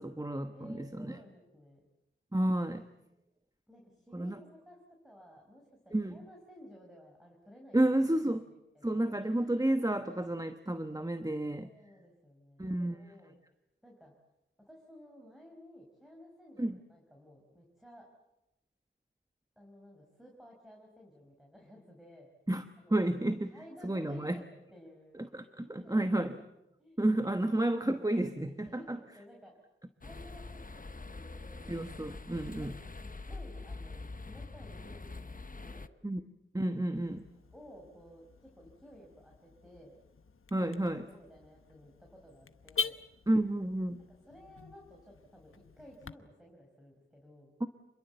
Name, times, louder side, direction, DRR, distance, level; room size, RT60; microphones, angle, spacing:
voice 1, 0.0-1.2 2.3-2.9 4.1-4.4 5.9-6.2 7.7-8.4 8.8-11.7 12.6-13.0 16.6-16.8 22.5-22.6 22.9-23.5 23.8-24.4 25.3-26.3 27.0-29.0 31.7-32.7 36.0-36.2 36.5-37.2 40.5-41.0 43.3-44.0 47.6-47.7, right 1 dB, 15° right, 8 dB, 1.2 m, -31 dB
voice 2, 0.5-1.9 3.7-5.6 6.0-7.8 8.3-9.2 11.6-13.4 13.8-14.1 14.7-18.0 19.5-22.3 22.8-23.0 23.5-26.3 26.8-27.0 28.6-29.5 30.0-31.8 32.6-32.9 33.2-35.9 37.5-40.0 40.6-40.7 41.1-43.0 44.2-47.5, equal, ahead, 0 dB, 5.2 m, -55 dB
sound 1, 30.0-35.9, left 3 dB, 40° left, 1.0 m, -44 dB
Car / Alarm, 36.9-46.1, left 5 dB, 90° left, 0.9 m, -44 dB
27.5 x 22.0 x 8.0 m, 0.95 s
wide cardioid pair, 60°, 21 cm